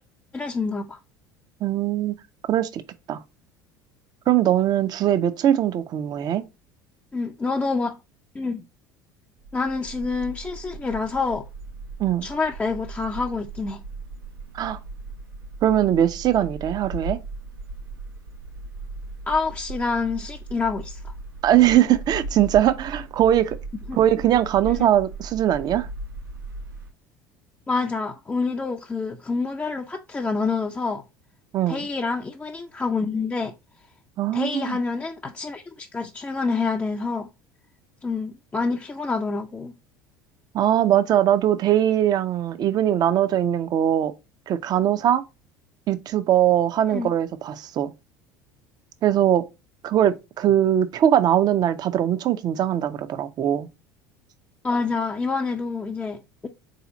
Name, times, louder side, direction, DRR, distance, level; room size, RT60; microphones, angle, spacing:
voice 1, 0.3-1.0 7.1-8.0 8.3-8.6 9.5-11.4 12.2-13.8 19.3-21.1 23.9-24.0 24.7-24.9 27.7-31.0 31.7-33.5 34.3-37.3 38.0-39.7 46.9-47.1 54.6-56.5, left 4 dB, 15° left, 0.4 m, -27 dB
voice 2, 1.6-2.2 2.5-2.8 3.1-3.2 4.3-6.4 12.0-12.3 14.5-14.8 15.6-17.2 21.4-23.6 24.0-25.9 31.5-31.9 34.2-34.8 40.5-44.1 44.5-45.2 45.9-47.9 49.0-49.4 49.8-53.7, right 11 dB, 35° right, 0.5 m, -21 dB
sound 1, 9.4-26.9, right 2 dB, 80° right, 0.9 m, -38 dB
4.0 x 2.7 x 3.9 m
figure-of-eight pair, 65°, 11 cm